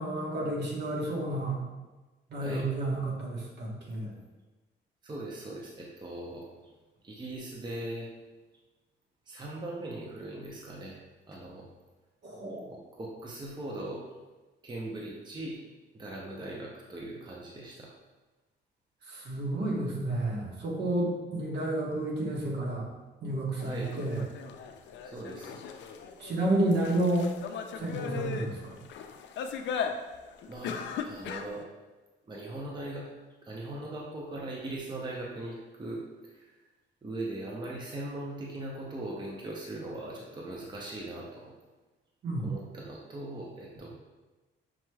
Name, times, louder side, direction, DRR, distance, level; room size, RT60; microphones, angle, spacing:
voice 1, 0.0-1.6 2.3-4.1 12.2-12.7 19.0-22.9 23.2-24.2 26.2-27.3 27.8-28.8 42.2-42.5, right 1 dB, 60° right, -3 dB, 1.2 m, -30 dB
voice 2, 2.4-2.7 5.0-6.4 7.0-8.1 9.3-11.0 11.3-11.7 12.7-14.0 14.6-15.6 16.0-17.9 23.6-23.9 25.1-25.6 30.4-31.7 32.3-33.1 33.4-36.0 37.0-41.4 42.4-43.9, right 1 dB, 20° right, -3 dB, 0.7 m, -39 dB
sound 1, 23.6-31.6, left 7 dB, 65° left, 0.4 m, -38 dB
6.0 x 3.0 x 2.3 m, 1.2 s
cardioid pair, 90°, 20 cm